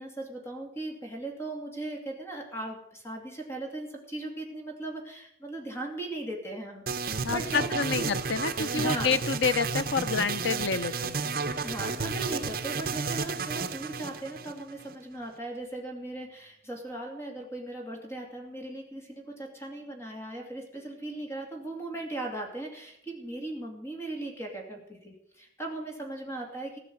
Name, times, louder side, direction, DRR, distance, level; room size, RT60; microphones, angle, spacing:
voice 1, 0.0-8.1 8.8-9.2 11.6-26.8, right 2 dB, 15° left, 2 dB, 2.6 m, -38 dB
sound 1, 6.9-14.9, right 4 dB, 50° right, 0.9 m, -32 dB
voice 2, 7.2-11.2, left 5 dB, 90° left, 13 dB, 0.8 m, -28 dB
16.0 x 6.1 x 9.3 m, 0.73 s
head